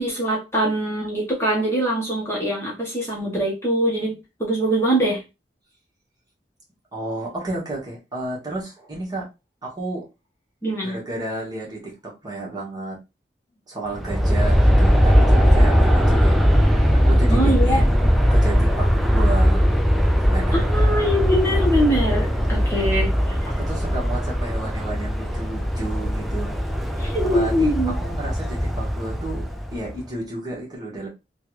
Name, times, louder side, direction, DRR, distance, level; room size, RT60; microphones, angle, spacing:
voice 1, 0.0-4.1 4.4-5.2 10.6-11.0 17.3-17.8 20.5-23.1 27.0-27.9, right 1 dB, 15° left, -3 dB, 0.9 m, -23 dB
voice 2, 6.9-9.3 9.6-10.1 10.8-13.0 13.7-19.7 20.2-20.6 23.5-26.5 27.2-31.1, right 2 dB, 25° right, -3 dB, 1.4 m, -32 dB
Aircraft, 13.9-30.0, equal, ahead, 0.4 m, -19 dB
3.4 x 2.3 x 3.1 m, 0.25 s
head